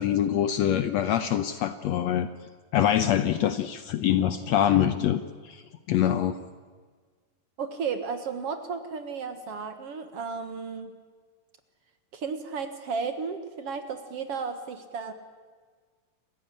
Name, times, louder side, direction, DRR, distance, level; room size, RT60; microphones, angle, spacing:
voice 1, 0.0-2.3 2.7-5.6 5.9-6.3, left 10 dB, 70° left, 11 dB, 1.7 m, -24 dB
voice 2, 7.6-10.9 12.1-15.1, right 5 dB, 55° right, 8 dB, 2.1 m, -33 dB
28.0 x 15.5 x 9.9 m, 1.6 s
omnidirectional pair, 3.8 m